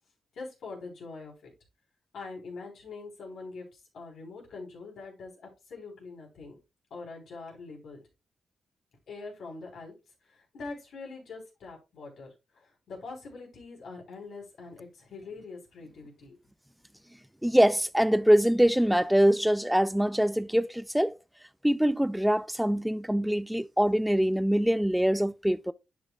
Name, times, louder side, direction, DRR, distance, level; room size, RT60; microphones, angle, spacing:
voice 1, 0.3-1.5 2.1-6.5 6.9-8.0 9.1-9.9 10.3-16.4, left 3 dB, 80° left, 3.7 m, -43 dB
voice 2, 17.4-21.1 21.6-25.7, equal, 5° right, 0.4 m, -24 dB
10.5 x 5.1 x 2.3 m
cardioid pair, 90°, 0 cm